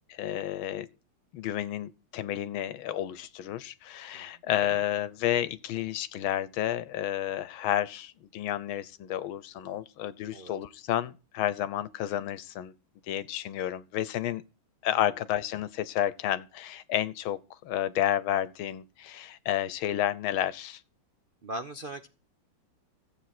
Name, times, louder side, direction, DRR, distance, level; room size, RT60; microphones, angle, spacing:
voice 1, 0.1-0.9 1.3-12.7 13.1-14.4 14.8-20.8, left 11 dB, 75° left, 1.6 m, -31 dB
voice 2, 21.4-22.1, right 1 dB, 80° right, 0.4 m, -39 dB
14.5 x 8.1 x 5.9 m
omnidirectional pair, 2.4 m